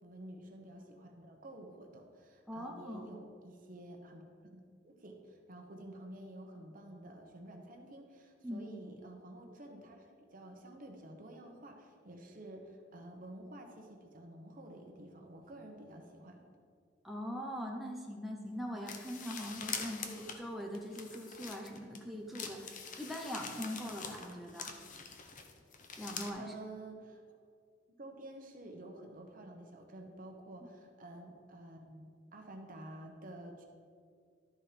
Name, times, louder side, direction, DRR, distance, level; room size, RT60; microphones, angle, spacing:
voice 1, 0.0-16.4 26.4-27.2 28.0-33.6, right 1 dB, 50° right, 2 dB, 1.1 m, -50 dB
voice 2, 2.5-3.1 8.4-8.6 17.0-24.7 26.0-26.5, equal, ahead, -1 dB, 0.7 m, -42 dB
sound 1, 18.9-22.0 22.3-26.3, left 5 dB, 45° left, 0.8 m, -44 dB
12.0 x 4.5 x 5.0 m, 2.1 s
head